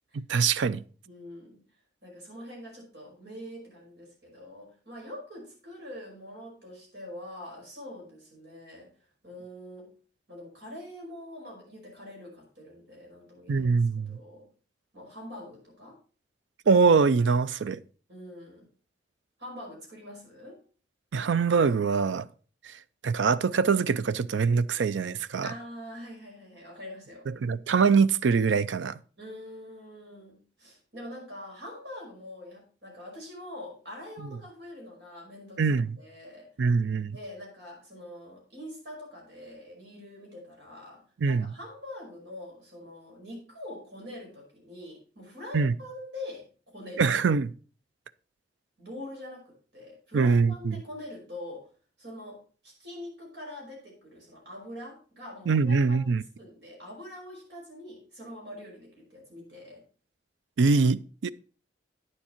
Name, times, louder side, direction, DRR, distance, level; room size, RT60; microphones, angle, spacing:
voice 1, 0.1-0.8 13.5-14.2 16.7-17.8 21.1-22.3 22.6-22.7 23.0-25.5 27.3-29.0 35.6-36.0 36.6-37.2 41.2-41.5 45.5-45.7 47.0-47.5 50.1-50.8 55.5-56.2 60.6-61.3, right 5 dB, 80° right, 0.5 m, -23 dB
voice 2, 1.1-1.6 2.0-8.9 9.2-9.9 10.3-13.7 14.1-14.5 14.9-16.0 18.1-18.6 19.4-20.6 25.4-27.3 29.2-35.6 36.0-36.5 37.1-47.1 48.8-51.7 52.0-56.1 56.4-59.8, left 1 dB, 65° right, 5.3 m, -44 dB
9.7 x 7.2 x 4.4 m
head